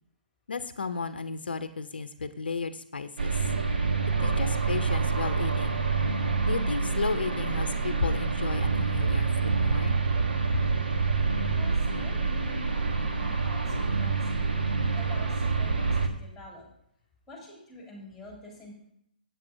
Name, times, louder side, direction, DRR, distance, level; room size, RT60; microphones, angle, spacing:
voice 1, 0.5-3.4 4.2-5.8 6.5-10.0, left 4 dB, 80° left, 11 dB, 0.6 m, -33 dB
sound 1, 3.2-16.1, right 4 dB, 80° right, 1.2 m, -27 dB
voice 2, 11.5-14.2 14.8-16.6 17.3-18.9, left 1 dB, ahead, -1 dB, 3.0 m, -47 dB
8.2 x 7.6 x 4.9 m, 0.74 s
figure-of-eight pair, 140°, 5 cm